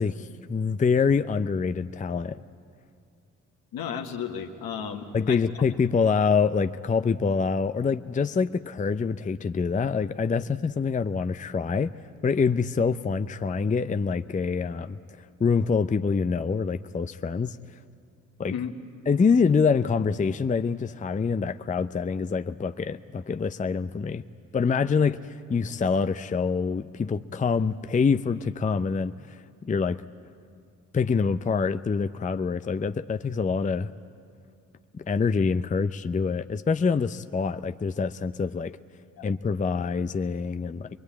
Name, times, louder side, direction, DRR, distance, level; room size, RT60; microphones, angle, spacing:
voice 1, 0.0-2.4 5.1-11.9 12.2-15.0 15.4-17.6 18.4-18.5 19.1-24.2 24.5-29.4 29.6-30.0 30.9-33.9 34.9-38.7 39.2-40.9, left 5 dB, 20° left, 11 dB, 0.6 m, -25 dB
voice 2, 3.7-5.4 18.5-18.7 39.2-39.3, left 7 dB, 65° left, 4 dB, 1.8 m, -33 dB
23.0 x 22.5 x 8.7 m, 2.3 s
hypercardioid pair, 45°, 38 cm